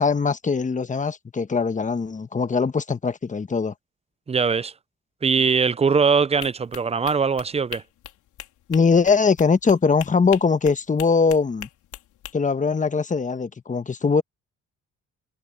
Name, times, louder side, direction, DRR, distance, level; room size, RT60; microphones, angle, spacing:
voice 1, 0.0-3.7 8.7-11.7 12.3-14.2, left 5 dB, 25° left, 1.2 m, -21 dB
voice 2, 4.3-4.7 5.2-7.8, right 5 dB, 20° right, 0.5 m, -21 dB
sound 1, 6.4-12.3, left 12 dB, 85° left, 3.8 m, -41 dB
cardioid pair, 90°, 30 cm